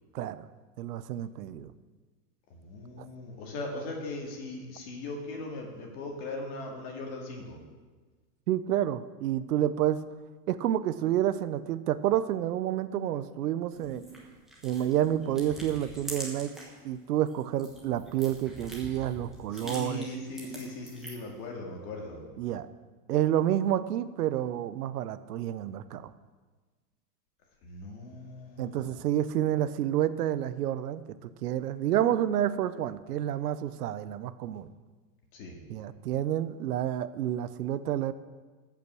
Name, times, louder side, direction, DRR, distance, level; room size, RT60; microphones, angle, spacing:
voice 1, 0.1-0.4 0.8-1.7 3.0-3.1 8.5-10.0 10.5-14.0 14.6-16.5 16.8-20.1 22.4-22.7 23.1-26.1 28.6-34.7 35.7-38.1, right 11 dB, 85° right, 14 dB, 0.8 m, -29 dB
voice 2, 2.5-7.6 19.5-22.2 27.6-29.0 35.3-35.6, left 2 dB, 30° left, 1 dB, 2.1 m, -39 dB
sound 1, 13.7-16.8 17.1-21.4, right 1 dB, ahead, 1.3 m, -44 dB
15.0 x 6.0 x 6.2 m, 1.3 s
supercardioid pair, 175°, 46 cm